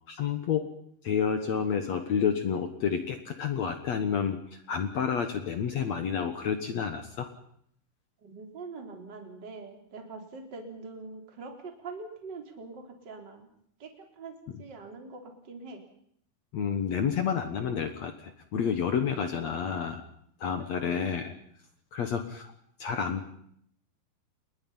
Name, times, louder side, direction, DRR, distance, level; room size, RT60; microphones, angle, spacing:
voice 1, 0.1-0.7 1.0-4.4 4.7-7.3 16.5-20.0 20.4-21.3 21.9-22.5 22.8-23.4, left 7 dB, 60° left, 7 dB, 1.9 m, -29 dB
voice 2, 8.2-13.5 13.8-15.8 16.9-17.1 20.8-21.1, right 3 dB, 25° right, 3 dB, 3.7 m, -44 dB
28.5 x 21.5 x 5.7 m, 0.68 s
omnidirectional pair, 4.8 m